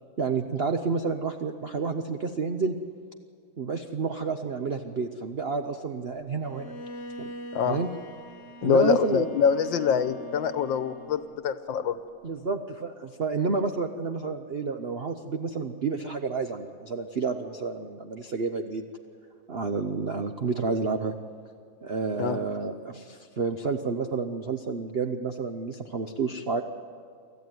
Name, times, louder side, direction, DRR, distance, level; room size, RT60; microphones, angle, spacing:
voice 1, 0.2-2.8 3.6-6.7 7.2-7.3 7.7-7.9 8.6-9.4 12.2-18.9 19.5-21.1 21.8-26.6, right 4 dB, 70° right, 6 dB, 0.5 m, -30 dB
Bowed string instrument, 6.4-11.4, left 1 dB, 40° left, 1.2 m, -43 dB
voice 2, 8.6-12.0 22.2-22.4, left 7 dB, 70° left, 11 dB, 1.6 m, -24 dB
25.0 x 14.5 x 9.4 m, 2.1 s
omnidirectional pair, 2.3 m